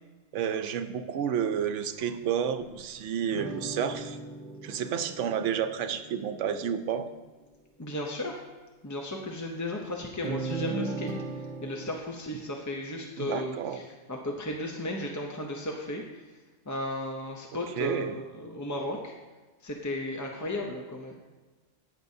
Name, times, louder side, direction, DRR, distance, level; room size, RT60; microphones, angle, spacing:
voice 1, 0.3-4.2 4.6-7.1 13.2-13.8 17.8-18.2, right 8 dB, 75° right, 10 dB, 0.9 m, -30 dB
sound 1, 3.3-5.9 10.2-12.0, right 3 dB, 45° right, 1.0 m, -36 dB
voice 2, 7.8-8.4 8.8-11.1 11.4-13.8 14.1-16.0 16.7-19.1 19.6-21.2, left 1 dB, 25° left, 1 dB, 0.4 m, -35 dB
18.0 x 6.0 x 2.7 m, 1.3 s
omnidirectional pair, 1.3 m